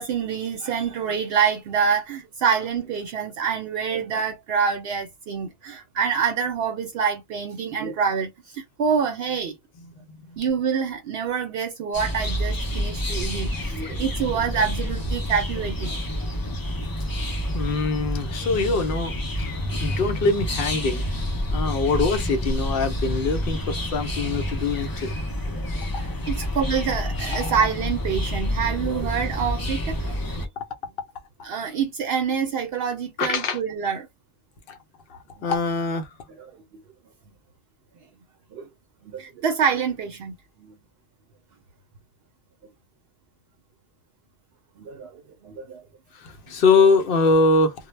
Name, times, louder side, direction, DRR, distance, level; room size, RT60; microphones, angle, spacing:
voice 1, 0.0-9.5 10.4-16.0 25.5-25.7 26.3-30.1 31.4-34.1 36.4-36.5 38.5-38.6 39.0-40.3 40.6-40.7 44.8-45.8, right 6 dB, 75° right, 0.8 m, -26 dB
sound 1, 11.9-30.5, equal, 35° left, 0.3 m, -28 dB
voice 2, 17.5-19.5 19.8-21.1 21.5-25.1 25.9-26.0 27.3-27.5 30.6-30.7 31.4-31.5 33.2-33.6 34.7-34.8 35.4-36.1 46.2-47.7, left 3 dB, 65° left, 0.7 m, -23 dB
2.1 x 2.0 x 3.1 m
omnidirectional pair, 1.1 m